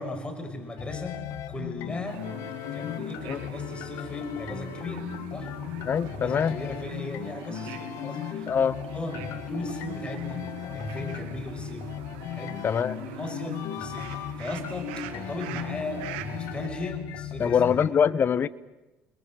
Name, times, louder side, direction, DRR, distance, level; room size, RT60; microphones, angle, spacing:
voice 1, 0.0-2.3 2.7-5.5 6.1-8.5 8.9-12.0 12.3-12.6 13.0-18.0, left 1 dB, 20° left, 6 dB, 5.9 m, -37 dB
sound 1, 0.8-17.9, left 12 dB, 70° left, 1.3 m, -37 dB
sound 2, 2.0-16.7, right 10 dB, 90° right, 2.3 m, -43 dB
voice 2, 5.9-6.5 8.5-8.8 12.6-13.0 17.4-18.5, left 7 dB, 40° left, 17 dB, 1.1 m, -23 dB
30.0 x 22.0 x 7.8 m, 1.0 s
supercardioid pair, 85°, 5 cm